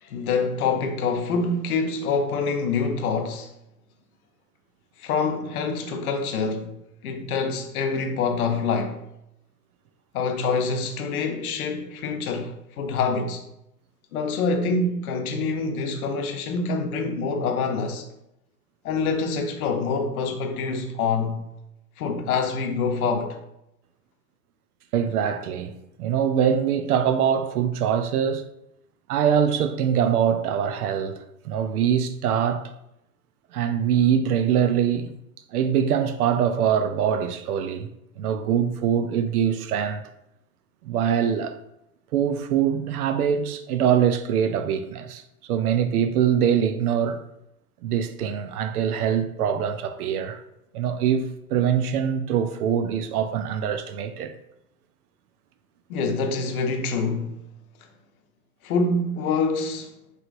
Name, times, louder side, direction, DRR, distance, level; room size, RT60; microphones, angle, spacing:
voice 1, 0.0-3.5 5.0-6.7 7.0-9.0 10.1-13.4 14.1-18.1 18.8-21.4 22.0-23.4 55.9-57.4 58.6-59.9, left 4 dB, 65° left, 0.8 m, -26 dB
voice 2, 24.9-28.5 29.1-32.6 33.5-35.1 35.5-37.9 38.2-40.0 40.8-41.6 42.1-45.2 45.5-47.2 47.8-50.4 50.7-54.3, right 8 dB, 65° right, 0.6 m, -23 dB
4.8 x 3.2 x 2.5 m
hypercardioid pair, 110°, 48 cm